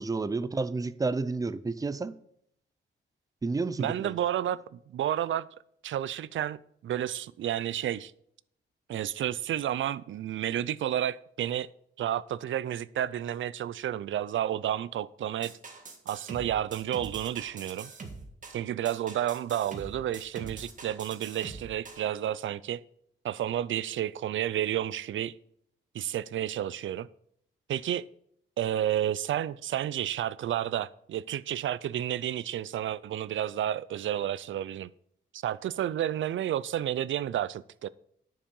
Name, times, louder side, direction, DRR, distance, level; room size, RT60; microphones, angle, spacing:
voice 1, 0.0-2.1 3.4-4.2, right 3 dB, 15° right, 0.5 m, -31 dB
voice 2, 3.8-5.5 5.8-8.1 8.9-11.7 12.0-15.6 16.1-17.9 18.5-22.8 23.2-25.3 25.9-27.1 27.7-28.0 28.6-34.9 35.3-37.9, right 11 dB, 70° right, 0.5 m, -31 dB
sound 1, 15.4-22.1, right 4 dB, 40° right, 1.7 m, -44 dB
10.0 x 7.2 x 5.3 m
wide cardioid pair, 145°, 21 cm